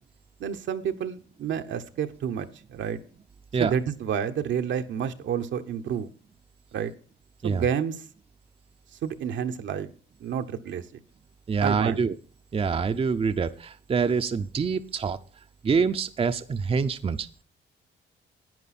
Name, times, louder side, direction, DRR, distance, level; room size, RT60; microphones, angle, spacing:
voice 1, 0.4-3.0 3.6-6.1 6.7-6.9 7.4-8.0 9.0-9.9 10.2-10.8 11.6-12.0, right 8 dB, 70° right, 7 dB, 1.0 m, -29 dB
voice 2, 11.5-12.2 12.5-15.2 15.6-17.3, right 5 dB, 30° right, 8 dB, 0.6 m, -25 dB
10.5 x 9.4 x 4.2 m, 0.39 s
cardioid pair, 90°, 20 cm